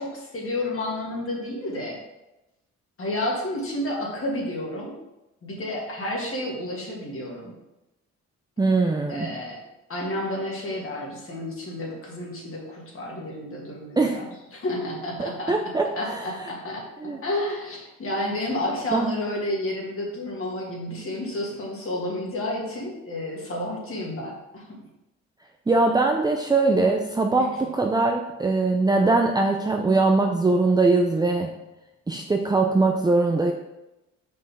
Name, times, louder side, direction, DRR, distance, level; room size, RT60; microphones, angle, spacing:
voice 1, 0.0-2.0 3.0-4.9 5.4-7.5 9.1-9.6 9.9-15.5 16.0-24.8 27.4-27.5, left 1 dB, 45° left, -3 dB, 2.1 m, -31 dB
voice 2, 8.6-9.3 14.0-14.2 15.2-16.3 17.0-17.2 18.9-19.1 25.7-31.5 32.1-33.5, right 3 dB, 15° right, 2 dB, 0.5 m, -22 dB
5.5 x 5.2 x 3.6 m, 0.96 s
cardioid pair, 90°, 30 cm